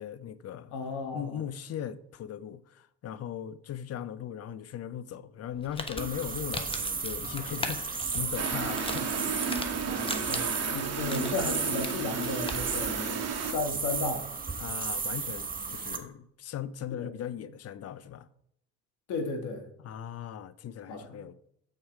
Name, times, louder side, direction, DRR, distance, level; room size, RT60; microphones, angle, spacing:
voice 1, 0.0-0.7 1.1-9.5 14.6-18.3 19.8-21.3, left 9 dB, 50° left, 0.6 m, -39 dB
voice 2, 0.7-1.4 9.8-14.3 17.0-17.1 19.1-19.6 20.9-21.2, left 3 dB, 65° left, 1.8 m, -34 dB
Crumpling crinkling, 5.5-12.9, left 2 dB, 15° left, 1.0 m, -41 dB
sound 1, 6.0-16.0, right 5 dB, 25° right, 1.3 m, -34 dB
sound 2, 8.4-13.5, right 6 dB, 50° right, 1.3 m, -34 dB
6.6 x 6.2 x 4.7 m
supercardioid pair, 65°, 32 cm